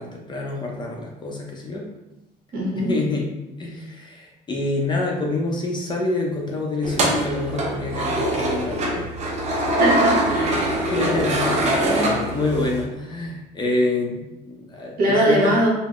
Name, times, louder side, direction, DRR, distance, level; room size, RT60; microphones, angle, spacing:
voice 1, 0.0-1.8 2.8-3.2 3.6-9.1 10.9-11.6 11.8-15.6, left 2 dB, 25° left, -1 dB, 0.5 m, -27 dB
voice 2, 2.5-2.9 9.8-10.9 15.0-15.7, right 1 dB, 60° right, -4 dB, 1.0 m, -21 dB
sound 1, 6.8-12.8, right 1 dB, 40° right, 0.6 m, -23 dB
3.6 x 2.0 x 2.3 m, 0.96 s
cardioid pair, 110°, 17 cm